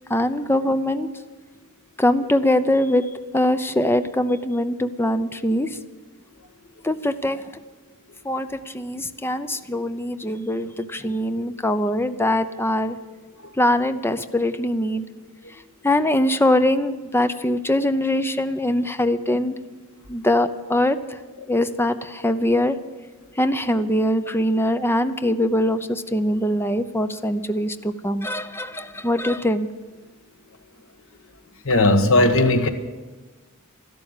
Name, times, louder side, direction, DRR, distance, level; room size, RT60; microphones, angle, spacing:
voice 1, 0.1-1.1 2.0-5.8 6.8-7.5 8.2-13.0 13.5-15.1 15.5-19.6 20.1-21.2 21.5-22.8 23.4-29.7, left 1 dB, 10° left, 11 dB, 0.7 m, -22 dB
voice 2, 31.6-32.7, left 2 dB, 65° left, 7 dB, 1.4 m, -17 dB
13.0 x 12.0 x 9.0 m, 1.3 s
head